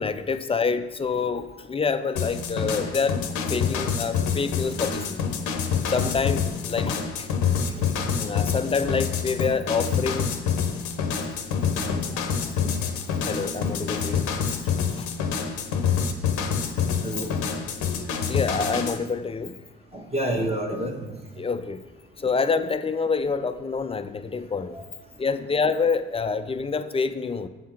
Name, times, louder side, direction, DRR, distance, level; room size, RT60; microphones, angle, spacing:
voice 1, 0.0-5.4 5.9-7.3 7.7-10.3 13.2-14.3 14.9-15.1 17.3-17.5 18.3-19.6 21.4-21.8 22.2-24.8 25.2-27.5, left 5 dB, 20° left, 11 dB, 0.4 m, -27 dB
sound 1, 2.2-19.0, left 6 dB, 70° left, 0.7 m, -27 dB
voice 2, 19.9-20.9 24.7-24.8, right 1 dB, 20° right, -1 dB, 1.2 m, -29 dB
7.5 x 3.6 x 4.5 m, 1.2 s
hypercardioid pair, 50°, 31 cm